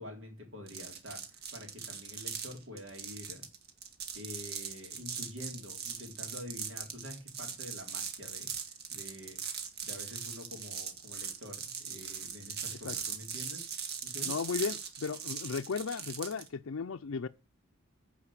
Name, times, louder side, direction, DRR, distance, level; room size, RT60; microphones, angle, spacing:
voice 1, 0.0-3.5 4.1-8.5 8.9-9.6 9.8-13.6 14.0-14.5, left 1 dB, 65° right, 3.8 m, -47 dB
sound 1, 0.7-16.5, right 7 dB, 50° right, 1.7 m, -40 dB
voice 2, 14.2-17.3, left 5 dB, 70° left, 0.5 m, -35 dB
15.0 x 5.1 x 7.3 m
head